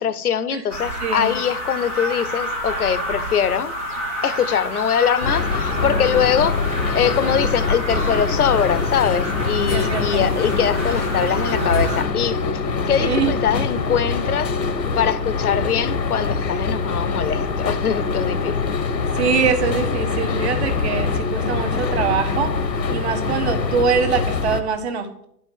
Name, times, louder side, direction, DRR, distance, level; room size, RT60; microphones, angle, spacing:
voice 1, 0.0-3.7 4.2-6.6 6.9-12.4 12.7-14.5 14.9-18.7 21.9-22.1, left 8 dB, 60° left, 0.9 m, -22 dB
sound 1, 0.7-12.0, equal, 10° right, 0.6 m, -28 dB
voice 2, 1.0-1.3 9.7-10.3 13.0-13.3 19.1-22.5 22.9-25.3, right 6 dB, 40° right, 1.4 m, -23 dB
sound 2, 5.2-24.6, left 4 dB, 90° left, 1.5 m, -24 dB
11.0 x 5.6 x 7.4 m
hypercardioid pair, 160°, 50 cm